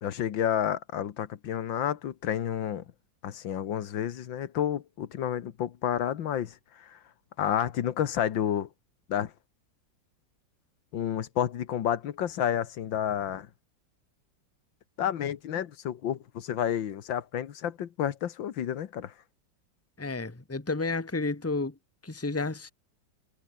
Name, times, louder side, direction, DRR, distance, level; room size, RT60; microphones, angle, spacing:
voice 1, 0.0-2.8 3.2-7.0 7.4-8.7 9.1-9.3 10.9-13.5 15.0-19.1, left 10 dB, 85° left, 2.0 m, -30 dB
voice 2, 20.0-21.7 22.0-22.7, left 3 dB, 10° left, 1.4 m, -31 dB
omnidirectional pair, 2.0 m